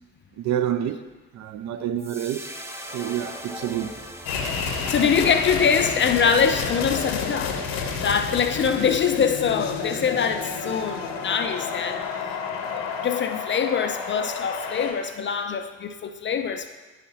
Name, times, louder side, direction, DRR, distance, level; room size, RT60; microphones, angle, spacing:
voice 1, 0.4-1.0 1.3-2.5 2.9-4.0, right 10 dB, 45° right, 0.5 m, -28 dB
sound 1, 2.0-8.4, equal, 5° right, 0.8 m, -42 dB
sound 2, 4.2-14.9, left 5 dB, 65° left, 1.0 m, -30 dB
voice 2, 4.5-7.6 8.0-12.0 12.7-16.7, left 6 dB, 30° left, 0.4 m, -24 dB
10.5 x 4.8 x 2.9 m
figure-of-eight pair, 40°, 42 cm